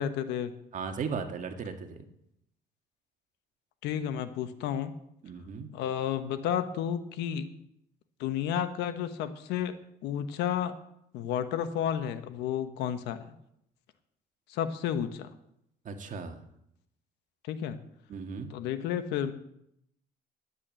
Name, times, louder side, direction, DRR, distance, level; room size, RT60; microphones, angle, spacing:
voice 1, 0.0-0.5 3.8-4.9 5.7-7.5 8.2-9.8 10.0-10.7 11.1-13.3 14.5-15.3 17.5-17.8 18.5-19.3, left 9 dB, 90° left, 10 dB, 1.2 m, -31 dB
voice 2, 0.7-2.0 5.2-5.7 15.9-16.4 18.1-18.5, right 5 dB, 50° right, 5 dB, 1.9 m, -36 dB
10.5 x 9.7 x 7.6 m, 0.76 s
cardioid pair, 110°, 17 cm